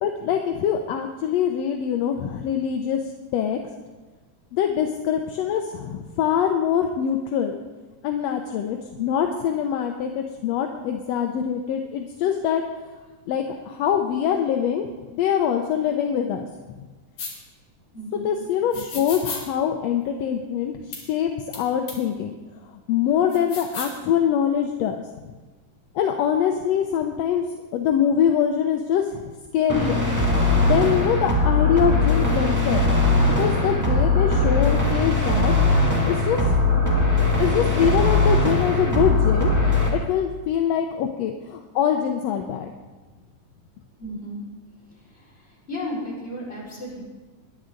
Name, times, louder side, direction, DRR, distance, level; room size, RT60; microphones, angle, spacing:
voice 1, 0.0-3.6 4.5-7.6 8.0-12.6 13.3-16.5 16.8-16.9 18.1-22.3 22.6-25.3 25.9-27.5 27.7-30.0 30.7-32.8 33.1-35.5 36.0-36.5 37.4-39.6 39.9-42.7, left 8 dB, 75° left, 4 dB, 1.6 m, -24 dB
sound 1, 17.2-17.3 18.7-19.4 20.9-21.0 21.5-21.6 21.9-22.0 23.3-24.0, left 4 dB, 55° left, 3.8 m, -33 dB
voice 2, 17.9-18.3 44.0-44.4 45.1-45.3 45.7-47.0, equal, 15° left, -7 dB, 4.9 m, -33 dB
sound 2, 29.7-39.9, left 2 dB, 10° right, 1.4 m, -20 dB
21.5 x 10.5 x 3.8 m, 1.3 s
omnidirectional pair, 3.6 m